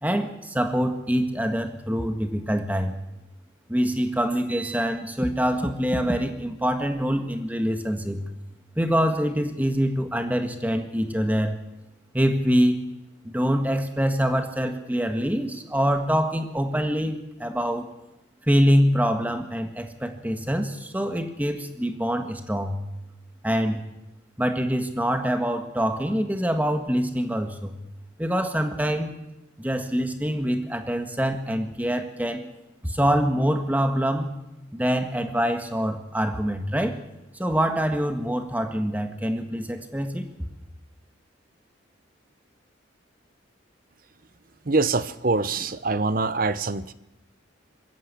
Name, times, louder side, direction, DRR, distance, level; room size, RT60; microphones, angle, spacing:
voice 1, 0.0-3.0 3.7-8.2 8.8-11.6 12.1-12.8 13.2-17.9 18.5-22.8 23.4-23.8 24.4-27.8 28.2-29.2 29.6-32.4 32.8-34.3 34.7-37.0 37.4-40.3, equal, 10° right, 6 dB, 1.6 m, -25 dB
voice 2, 44.7-46.9, right 3 dB, 45° right, 15 dB, 0.8 m, -24 dB
21.5 x 15.5 x 8.4 m, 0.96 s
head